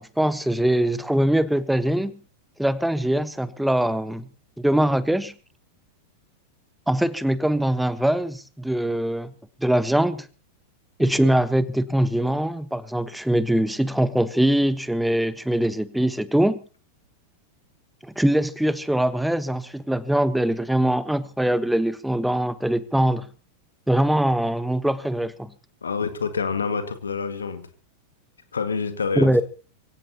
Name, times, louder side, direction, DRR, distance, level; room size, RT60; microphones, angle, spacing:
voice 1, 0.0-2.1 2.6-4.3 4.6-5.3 6.9-9.3 9.6-10.3 11.0-16.6 18.2-23.3 23.9-25.5 29.1-29.4, right 1 dB, ahead, 1.2 m, -22 dB
voice 2, 25.8-27.7 28.5-29.3, left 5 dB, 70° left, 2.1 m, -27 dB
24.0 x 16.5 x 3.0 m
figure-of-eight pair, 90°, 0 cm